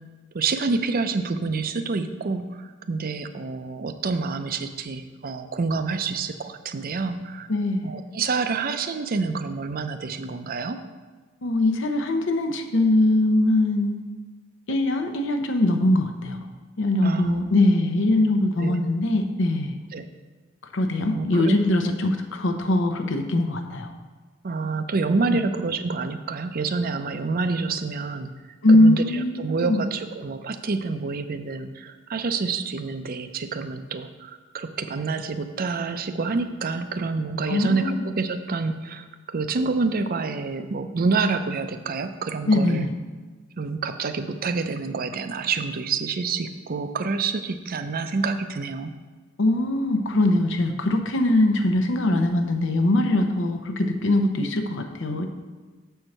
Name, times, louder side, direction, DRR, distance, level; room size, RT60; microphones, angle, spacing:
voice 1, 0.3-2.4 2.9-7.5 7.8-10.8 17.0-17.4 18.6-18.8 19.9-20.1 21.1-21.6 24.4-28.3 28.7-42.8 43.6-48.9, right 4 dB, 45° right, 9 dB, 0.5 m, -27 dB
voice 2, 7.5-7.9 11.4-14.1 14.7-16.4 16.8-19.8 20.7-23.9 25.3-25.4 28.6-29.8 37.5-38.0 42.5-42.9 49.4-55.3, left 1 dB, 65° left, 6 dB, 0.7 m, -22 dB
7.2 x 4.5 x 6.5 m, 1.4 s
head